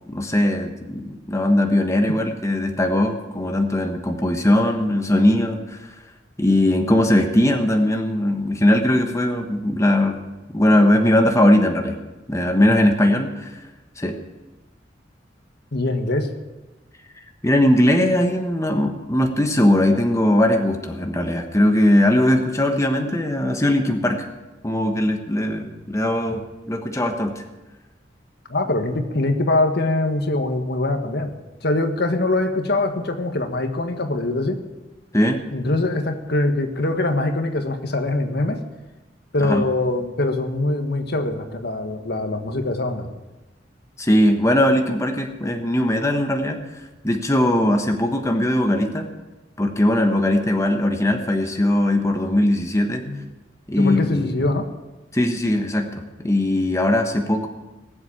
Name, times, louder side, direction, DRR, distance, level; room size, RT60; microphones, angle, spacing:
voice 1, 0.1-5.9 6.4-10.2 10.5-12.0 12.3-13.5 14.0-14.2 17.4-24.3 24.6-26.4 26.7-27.4 35.1-35.4 39.4-39.6 44.0-49.1 49.6-53.0 53.7-54.5 55.1-57.5, left 1 dB, 15° left, 4 dB, 1.2 m, -20 dB
voice 2, 15.7-16.3 28.5-31.3 31.6-34.6 35.5-38.6 39.3-43.1 53.0-53.2 53.8-54.7, left 2 dB, 60° left, 6 dB, 1.5 m, -23 dB
20.0 x 7.8 x 8.6 m, 1.1 s
head